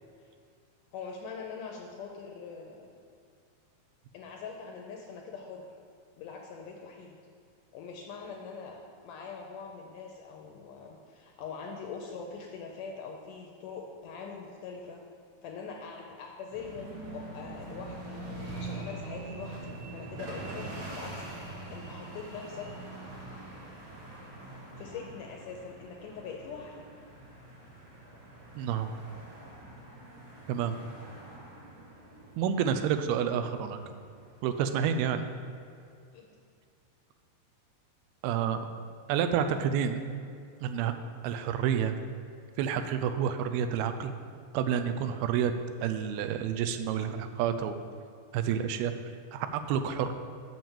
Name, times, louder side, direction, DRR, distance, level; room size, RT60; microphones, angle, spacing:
voice 1, 0.9-3.0 4.1-5.7 6.2-7.2 7.7-15.0 15.4-18.2 18.5-22.7 24.8-26.8 34.9-35.0 36.1-36.3, left 5 dB, 80° left, 1 dB, 1.9 m, -43 dB
sound 1, 16.5-35.1, right 2 dB, 40° right, 2.7 m, -44 dB
sound 2, 18.3-23.1, right 4 dB, 55° right, 2.3 m, -54 dB
voice 2, 28.6-28.9 30.5-30.8 32.4-33.8 34.4-35.2 38.2-38.7 39.1-40.0 40.6-40.9 41.2-42.0 42.6-44.1 44.5-45.5 45.8-47.8 48.3-48.9 49.3-50.1, right 8 dB, 90° right, 8 dB, 2.5 m, -29 dB
6.9 x 6.0 x 7.1 m, 2.4 s
omnidirectional pair, 4.4 m